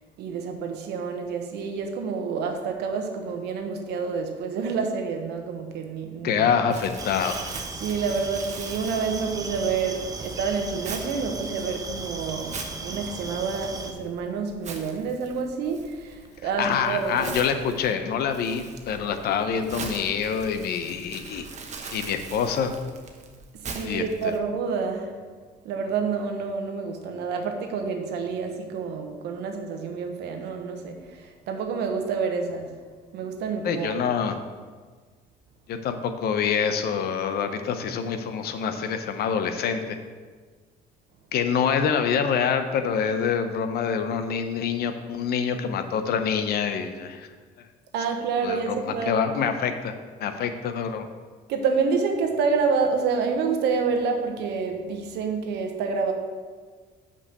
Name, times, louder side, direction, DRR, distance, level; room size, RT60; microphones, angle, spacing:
voice 1, 0.2-6.4 7.8-17.3 23.7-25.1 25.6-32.7 33.1-34.0 47.9-49.2 51.5-56.1, right 5 dB, 80° right, 4 dB, 1.2 m, -28 dB
voice 2, 6.2-7.4 16.6-21.5 21.9-22.7 23.8-24.3 33.6-34.4 35.7-40.0 41.3-47.3 48.4-49.9 50.2-51.1, left 7 dB, 70° left, 8 dB, 0.8 m, -26 dB
Crumpling crinkling, 6.7-24.4, right 4 dB, 45° right, 1.0 m, -42 dB
sound 1, 7.0-13.9, right 3 dB, 20° right, 0.8 m, -36 dB
5.7 x 5.4 x 6.6 m, 1.5 s
cardioid pair, 110°, 17 cm